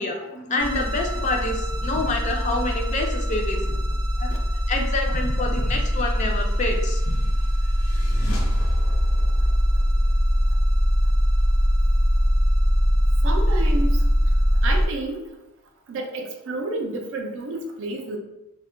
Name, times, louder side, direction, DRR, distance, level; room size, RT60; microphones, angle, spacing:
voice 1, 0.0-4.4 4.7-7.2, left 2 dB, 35° left, 2 dB, 0.4 m, -27 dB
sound 1, 0.6-14.9, equal, 20° right, 0.7 m, -22 dB
sound 2, 6.2-11.8, left 1 dB, 75° left, 0.6 m, -36 dB
voice 2, 13.2-14.0 14.6-15.2 15.9-18.2, right 2 dB, 60° right, 4 dB, 0.4 m, -30 dB
2.2 x 2.1 x 3.6 m, 0.93 s
head